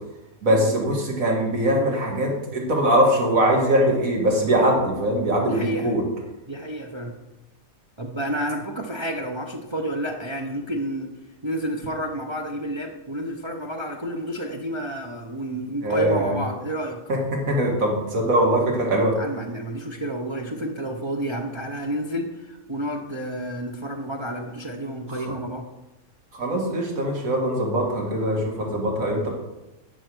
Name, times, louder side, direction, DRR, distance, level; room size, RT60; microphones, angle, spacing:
voice 1, 0.4-6.0 15.8-16.3 17.1-19.1 25.2-25.3 26.3-29.3, right 1 dB, 65° right, -1 dB, 2.2 m, -22 dB
voice 2, 5.4-6.0 6.5-7.2 8.0-11.1 11.4-17.0 19.2-25.7, right 1 dB, 50° right, 2 dB, 0.3 m, -30 dB
9.5 x 4.5 x 6.2 m, 1.0 s
omnidirectional pair, 1.5 m